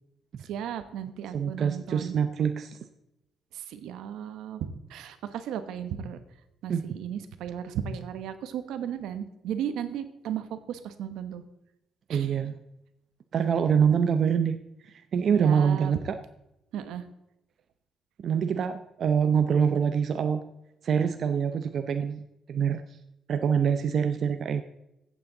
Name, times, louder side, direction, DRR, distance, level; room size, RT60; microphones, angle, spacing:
voice 1, 0.5-2.2 3.5-6.2 6.6-11.4 12.1-12.3 15.3-15.9 16.7-17.1, right 9 dB, 85° right, 10 dB, 1.0 m, -35 dB
voice 2, 1.3-2.8 6.7-7.0 12.1-12.6 13.3-16.2 18.2-20.4 20.8-22.2 22.5-22.8 23.3-24.6, right 7 dB, 60° right, 8 dB, 0.7 m, -25 dB
15.0 x 8.5 x 3.9 m, 0.87 s
cardioid pair, 90°, 0 cm